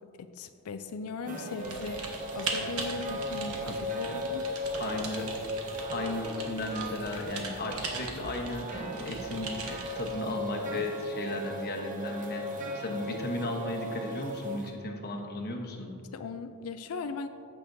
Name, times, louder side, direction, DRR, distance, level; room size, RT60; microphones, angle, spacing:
voice 1, 0.0-4.8 16.1-17.3, left 5 dB, 80° left, 9 dB, 0.4 m, -39 dB
sound 1, 1.3-14.7, equal, 40° right, 0.9 m, -37 dB
Typing, 1.6-10.2, right 4 dB, 85° right, 1.1 m, -40 dB
voice 2, 3.7-4.2 4.7-5.3 5.9-8.8 9.0-12.4 12.7-15.9, left 2 dB, 45° left, 2 dB, 1.0 m, -35 dB
15.0 x 6.0 x 2.7 m, 2.5 s
head